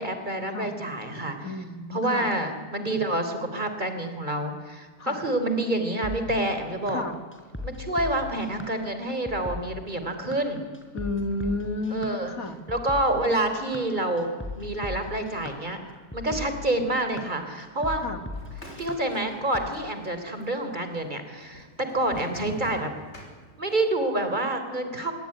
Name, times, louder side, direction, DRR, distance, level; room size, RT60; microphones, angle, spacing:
voice 1, 0.0-1.5 1.9-7.0 7.6-10.6 11.9-12.3 12.7-15.8 16.1-18.0 18.8-22.9 23.6-25.1, right 1 dB, 25° right, 8 dB, 3.7 m, -28 dB
voice 2, 1.4-2.3 5.0-5.2 6.9-7.2 10.9-12.6 18.0-18.2, left 2 dB, 55° left, 8 dB, 2.4 m, -32 dB
sound 1, 6.0-19.7, left 2 dB, 5° left, 4.2 m, -38 dB
sound 2, 18.3-19.8 20.0-20.8 21.4-23.9, equal, 40° left, 6.0 m, -43 dB
26.0 x 23.0 x 10.0 m, 1.5 s
omnidirectional pair, 1.7 m